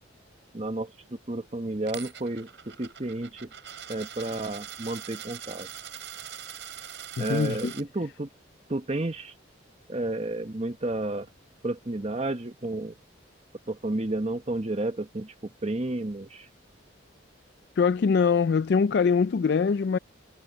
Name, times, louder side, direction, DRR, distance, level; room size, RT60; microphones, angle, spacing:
voice 1, 0.5-3.5 3.9-5.7 7.2-8.3 8.7-9.3 9.9-11.3 11.6-12.9 13.7-16.5, right 2 dB, 30° right, 1.1 m, -31 dB
Coin (dropping), 1.9-7.8, right 9 dB, 60° right, 5.8 m, -42 dB
voice 2, 7.2-7.7 17.8-20.0, left 5 dB, 55° left, 0.3 m, -23 dB
head